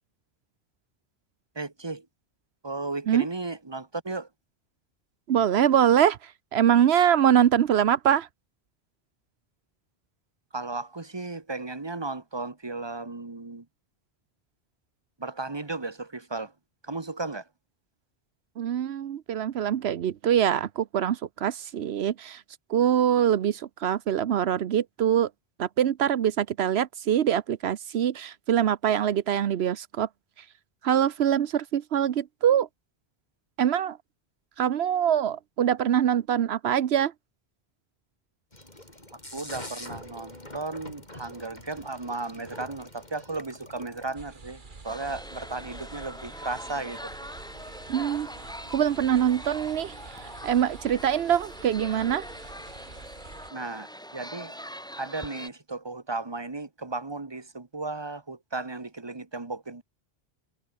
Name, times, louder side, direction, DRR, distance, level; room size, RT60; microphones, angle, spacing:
voice 1, 1.5-2.0 2.6-4.3 10.5-13.6 15.2-16.5 16.8-17.4 39.3-47.1 53.5-54.5 55.0-59.8, right 3 dB, 25° right, 1.5 m, -35 dB
voice 2, 5.3-8.3 18.6-22.4 22.7-25.3 25.6-30.1 30.8-32.7 33.6-34.0 34.6-37.1 47.9-48.3 48.7-52.3, right 9 dB, 85° right, 1.0 m, -24 dB
sound 1, 38.5-44.1, left 1 dB, 45° left, 6.1 m, -44 dB
sound 2, 44.2-53.5, right 4 dB, 50° right, 2.0 m, -47 dB
sound 3, 44.8-55.5, equal, 5° left, 7.4 m, -42 dB
omnidirectional pair, 1.0 m